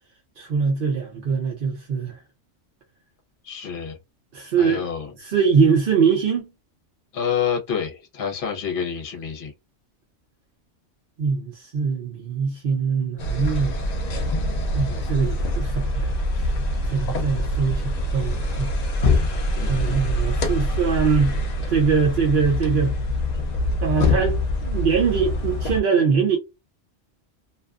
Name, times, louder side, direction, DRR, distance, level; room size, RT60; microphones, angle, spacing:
voice 1, 0.4-2.2 4.3-4.8 5.2-6.5 11.2-13.7 14.7-16.5 16.9-18.8 19.7-21.4 21.7-23.0 23.8-26.4, right 5 dB, 55° right, 0.7 m, -22 dB
voice 2, 3.4-4.0 4.6-5.1 7.1-9.5 19.6-20.0, left 7 dB, 50° left, 0.9 m, -28 dB
sound 1, 13.2-25.8, left 1 dB, 85° left, 0.3 m, -24 dB
2.5 x 2.3 x 2.3 m
omnidirectional pair, 1.3 m